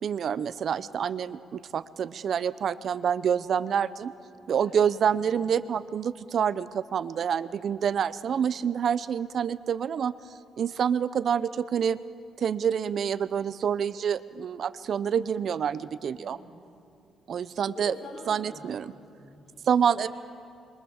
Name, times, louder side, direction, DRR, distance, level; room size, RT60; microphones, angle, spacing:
voice 1, 0.0-4.1 4.5-10.1 10.6-12.0 12.4-16.4 17.3-17.9 18.3-18.9 19.7-20.1, right 8 dB, 60° right, 16 dB, 0.7 m, -27 dB
voice 2, 4.5-5.4 16.2-16.6 17.7-19.7 20.0-20.1, left 2 dB, 40° left, -3 dB, 5.0 m, -46 dB
26.5 x 23.0 x 7.2 m, 2.6 s
cardioid pair, 90°, 0 cm